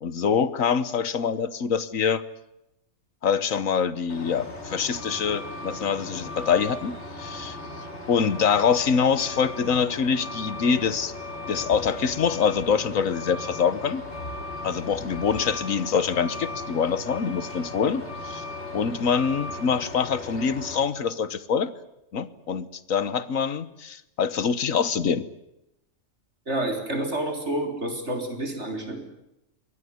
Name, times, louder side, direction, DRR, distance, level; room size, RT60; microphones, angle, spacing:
voice 1, 0.0-2.2 3.2-7.6 8.1-11.1 11.5-14.0 14.6-18.4 18.7-21.7 22.1-25.3, left 6 dB, 85° left, 16 dB, 1.6 m, -25 dB
Truck, 4.1-20.8, left 2 dB, 55° left, 4.0 m, -37 dB
voice 2, 26.5-29.0, right 1 dB, 55° right, 5 dB, 4.8 m, -29 dB
23.5 x 19.0 x 9.6 m, 0.87 s
omnidirectional pair, 1.4 m